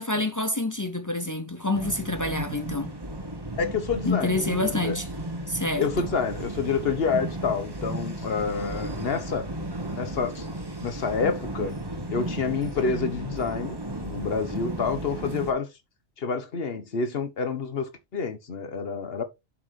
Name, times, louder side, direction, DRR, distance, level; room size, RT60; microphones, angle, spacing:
voice 1, 0.0-2.9 4.0-5.1 5.5-6.1, left 2 dB, 20° left, 0.5 m, -27 dB
sound 1, 1.7-15.5, right 1 dB, 20° right, 1.2 m, -34 dB
voice 2, 3.6-5.0 5.8-9.5 9.9-10.5 10.8-11.7 12.1-15.7 16.2-19.2, left 5 dB, 60° left, 1.3 m, -28 dB
7.4 x 6.4 x 3.2 m
omnidirectional pair, 1.2 m